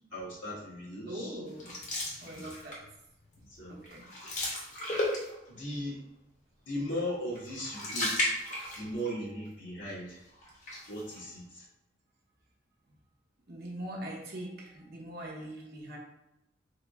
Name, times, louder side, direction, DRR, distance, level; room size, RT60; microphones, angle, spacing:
voice 1, 0.1-1.4 2.3-2.5 3.6-3.8 5.5-6.0 6.7-8.4 8.7-10.2 10.9-11.6, equal, 85° left, -8 dB, 1.5 m, -37 dB
voice 2, 1.1-1.7 2.2-2.8 3.7-4.1 8.6-8.8 13.5-16.0, right 1 dB, 55° right, -2 dB, 0.8 m, -42 dB
sound 1, 1.6-2.9 3.3-3.6 3.8-5.6 7.3-9.1 9.5-9.6 10.4-11.3, left 1 dB, 40° left, 0.8 m, -34 dB
3.6 x 2.0 x 3.4 m, 0.88 s
head